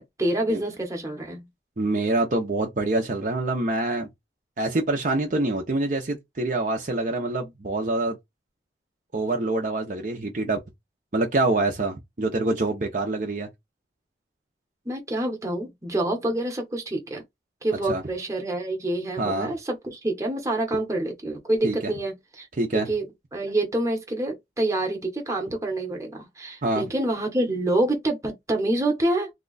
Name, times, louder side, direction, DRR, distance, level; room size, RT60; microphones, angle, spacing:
voice 1, 0.0-1.5 14.8-17.2 17.6-22.5 22.7-29.3, right 1 dB, 15° right, 1.0 m, -27 dB
voice 2, 1.8-4.1 4.6-8.2 9.1-10.6 11.1-13.5 17.9-18.0 19.2-19.5 21.6-21.9 22.6-22.9 26.6-26.9, right 2 dB, 45° right, 0.7 m, -25 dB
2.9 x 2.3 x 3.9 m
head